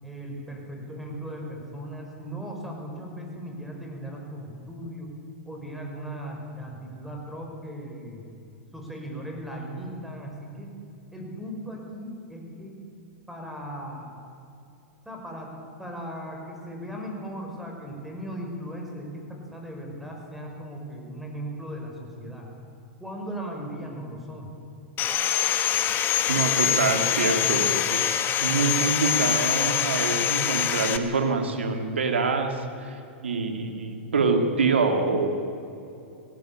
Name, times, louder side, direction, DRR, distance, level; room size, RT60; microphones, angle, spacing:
voice 1, 0.0-5.1 5.5-8.3 8.7-10.7 11.1-12.8 13.3-14.1 15.0-22.5 23.0-24.5, equal, ahead, 0 dB, 5.8 m, -37 dB
Sawing, 25.0-31.0, left 9 dB, 35° left, 1.5 m, -24 dB
voice 2, 26.3-35.3, right 4 dB, 90° right, 5 dB, 2.7 m, -26 dB
18.0 x 17.5 x 9.0 m, 2.7 s
hypercardioid pair, 110°, 6 cm